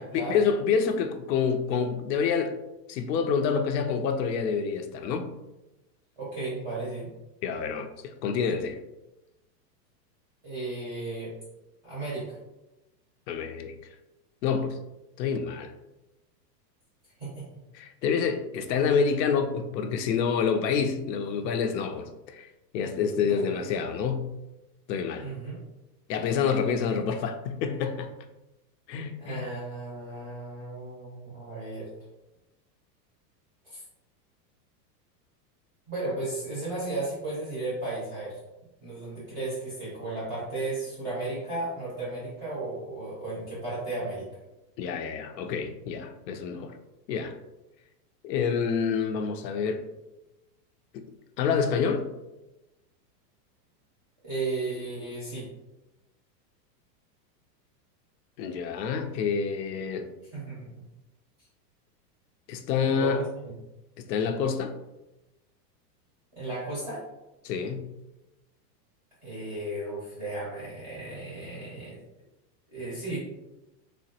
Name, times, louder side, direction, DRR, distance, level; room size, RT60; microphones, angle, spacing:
voice 1, 0.0-2.6 2.9-5.3 7.4-8.8 13.3-13.8 14.4-14.8 15.2-15.7 17.7-22.5 22.7-24.3 24.9-25.3 26.1-28.1 28.9-29.4 44.8-46.8 47.1-47.3 48.2-49.8 50.9-51.1 51.4-52.0 58.4-60.1 62.5-63.2 64.0-64.7 67.4-67.9, left 6 dB, 90° left, 7 dB, 0.6 m, -27 dB
voice 2, 6.2-7.1 10.4-11.3 11.8-12.2 17.2-17.4 23.2-23.6 25.2-25.6 29.2-31.9 33.7-33.8 35.9-38.4 38.8-44.3 54.2-55.5 60.3-60.7 62.8-63.3 66.4-67.0 69.2-72.0 72.7-73.2, right 2 dB, 10° right, -9 dB, 0.4 m, -34 dB
3.3 x 2.1 x 2.7 m, 0.98 s
supercardioid pair, 165°, 49 cm